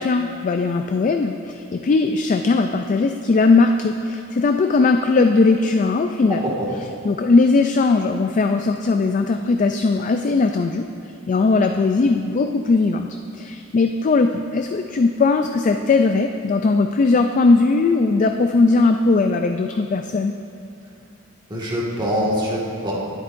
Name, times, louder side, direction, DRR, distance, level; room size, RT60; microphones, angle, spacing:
voice 1, 0.0-6.5 7.0-10.9 11.3-13.1 13.3-20.3, left 3 dB, 35° left, 6 dB, 0.3 m, -19 dB
voice 2, 21.5-22.9, equal, 25° right, -5 dB, 1.8 m, -24 dB
18.5 x 8.0 x 2.6 m, 2.5 s
head